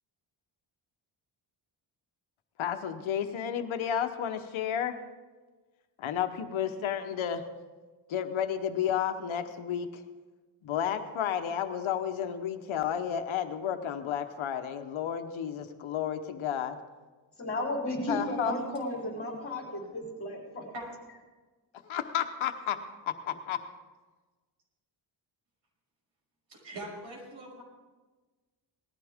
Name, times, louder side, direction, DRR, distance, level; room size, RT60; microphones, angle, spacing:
voice 1, 2.6-4.9 6.0-7.4 8.1-10.0 10.6-16.8 18.1-18.5 21.8-22.8 23.3-23.6, left 9 dB, 75° left, 7 dB, 1.1 m, -32 dB
voice 2, 17.4-20.6, left 1 dB, 25° left, -2 dB, 3.8 m, -34 dB
voice 3, 26.5-27.6, right 1 dB, 70° right, -2 dB, 6.0 m, -42 dB
19.0 x 14.5 x 3.6 m, 1.3 s
cardioid pair, 125°, 47 cm